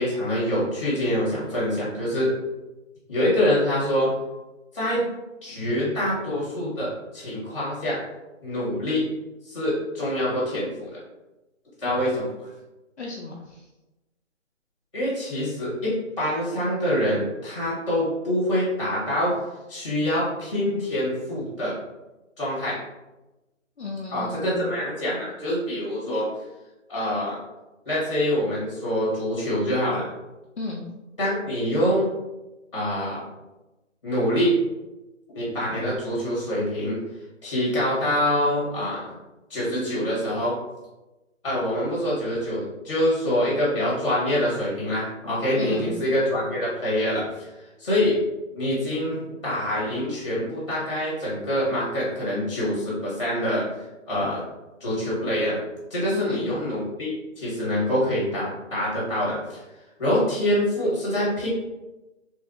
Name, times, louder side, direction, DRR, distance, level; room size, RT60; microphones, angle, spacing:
voice 1, 0.0-2.3 3.1-4.1 4.7-5.0 5.4-8.0 8.4-9.0 9.5-11.0 11.8-12.5 14.9-19.3 19.7-21.7 22.4-22.8 24.1-26.3 26.9-27.4 27.8-30.1 31.2-32.1 32.7-33.2 34.0-34.5 35.3-37.0 37.4-39.0 39.5-40.6 41.4-47.5 47.8-48.2 48.5-53.7 54.1-54.4 54.8-55.6 55.9-59.6 60.0-61.5, left 1 dB, 25° left, -7 dB, 1.0 m, -25 dB
voice 2, 13.0-13.7 23.8-24.7 30.6-30.8 45.6-45.9 56.1-56.5, left 3 dB, 60° left, -2 dB, 0.5 m, -34 dB
3.1 x 2.6 x 2.4 m, 1.0 s
hypercardioid pair, 175°, 38 cm